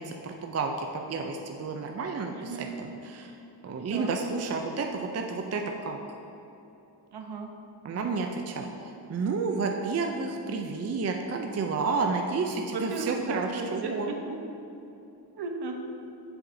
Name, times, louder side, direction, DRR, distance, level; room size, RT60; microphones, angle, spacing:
voice 1, 0.0-3.3 3.6-6.0 7.8-14.1, right 4 dB, 35° right, 3 dB, 0.5 m, -31 dB
voice 2, 2.3-2.6 3.9-4.2 7.1-7.5 12.7-14.1 15.4-15.7, right 3 dB, 65° right, 3 dB, 0.9 m, -35 dB
7.6 x 7.1 x 2.7 m, 2.9 s
wide cardioid pair, 110°, 43 cm